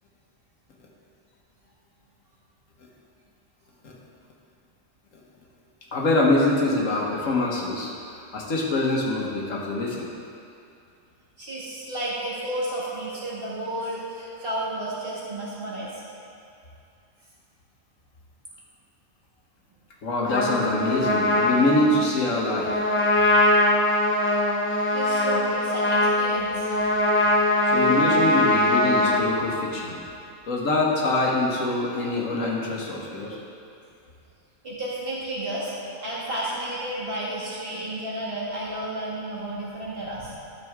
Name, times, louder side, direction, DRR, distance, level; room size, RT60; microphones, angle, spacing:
voice 1, 5.9-7.9 8.3-10.0 20.0-22.7 27.7-30.0 30.5-33.4, left 2 dB, 85° left, -2 dB, 1.6 m, -24 dB
voice 2, 11.4-16.0 24.9-26.7 34.6-40.5, right 1 dB, 45° right, -7 dB, 2.3 m, -32 dB
Trumpet, 20.3-29.2, left 1 dB, 10° left, 0.7 m, -22 dB
12.5 x 6.9 x 3.6 m, 2.6 s
omnidirectional pair, 1.3 m